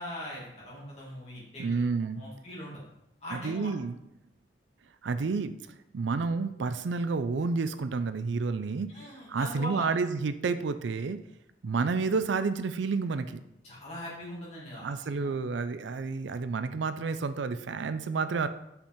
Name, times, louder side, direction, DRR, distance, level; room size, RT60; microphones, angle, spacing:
voice 1, 0.0-1.7 2.2-2.8 3.2-3.7 8.9-9.9 13.6-15.4, equal, 35° left, -6 dB, 2.5 m, -41 dB
voice 2, 1.6-2.2 3.3-4.0 5.0-5.5 5.9-8.9 9.3-11.2 11.6-13.4 14.8-18.5, right 4 dB, 80° right, 11 dB, 0.4 m, -30 dB
5.7 x 5.1 x 4.4 m, 0.82 s
head